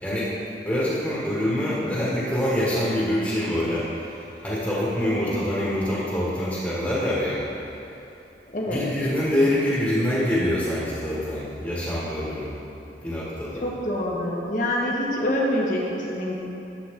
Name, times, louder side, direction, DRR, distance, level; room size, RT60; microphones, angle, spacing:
voice 1, 0.6-4.0 4.4-7.4 8.7-12.5 13.0-13.7, left 1 dB, 10° left, -8 dB, 1.6 m, -25 dB
voice 2, 5.0-5.3 8.5-8.8 13.6-16.3, left 1 dB, 45° left, -3 dB, 1.5 m, -26 dB
12.0 x 8.2 x 3.7 m, 2.9 s
head